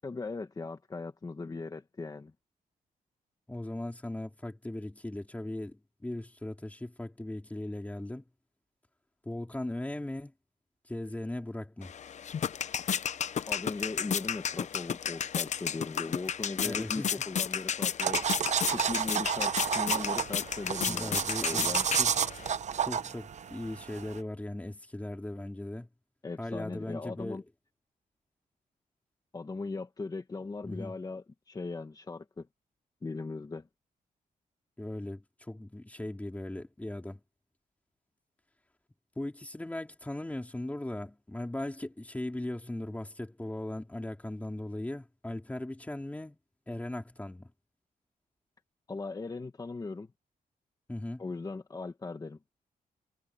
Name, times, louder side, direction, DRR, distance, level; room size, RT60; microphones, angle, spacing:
voice 1, 0.0-2.3 13.5-18.2 18.7-21.8 26.2-27.4 29.3-32.5 33.0-33.7 48.9-50.1 51.2-52.4, left 3 dB, 25° left, 1.5 m, -38 dB
voice 2, 3.5-8.2 9.2-10.3 10.9-11.9 16.6-17.1 20.9-22.1 22.8-25.9 26.4-27.4 30.6-31.0 34.8-37.2 39.2-46.4 46.7-47.5 50.9-51.2, left 1 dB, 10° left, 3.8 m, -38 dB
sound 1, 11.8-22.5, left 8 dB, 50° left, 0.7 m, -33 dB
sound 2, 18.0-24.2, right 8 dB, 50° right, 0.8 m, -31 dB
wide cardioid pair, 140°, 15 cm